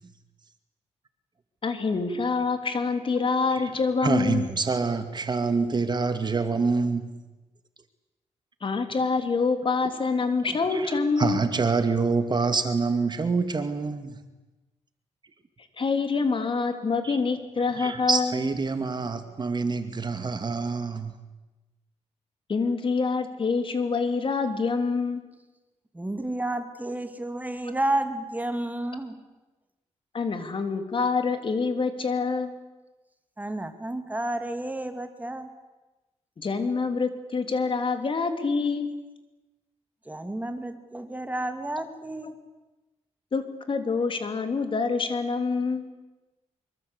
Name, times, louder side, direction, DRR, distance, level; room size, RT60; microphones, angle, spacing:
voice 1, 1.6-4.5 8.6-11.4 15.8-18.3 22.5-25.2 30.1-32.5 36.4-38.9 43.3-45.8, left 4 dB, 45° left, 3.2 m, -26 dB
voice 2, 4.0-7.1 10.7-10.9 11.2-14.2 17.0-17.2 17.8-21.2, right 4 dB, 40° right, 2.3 m, -26 dB
voice 3, 25.9-29.2 33.4-35.5 40.1-42.3, right 1 dB, 15° right, 2.7 m, -31 dB
24.5 x 23.0 x 8.3 m
cardioid pair, 95°, 12 cm